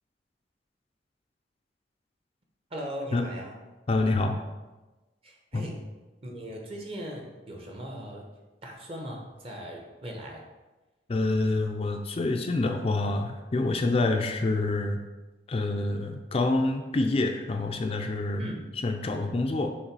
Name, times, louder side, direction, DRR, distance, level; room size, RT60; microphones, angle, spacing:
voice 1, 2.7-3.6 5.2-5.8 6.2-8.3 8.6-10.4 18.4-18.7, equal, 35° right, 1 dB, 0.9 m, -39 dB
voice 2, 3.9-4.4 5.5-5.7 11.1-15.0 15.5-18.4 18.8-19.7, left 2 dB, 35° left, 4 dB, 0.4 m, -27 dB
6.5 x 3.2 x 4.7 m, 1.1 s
head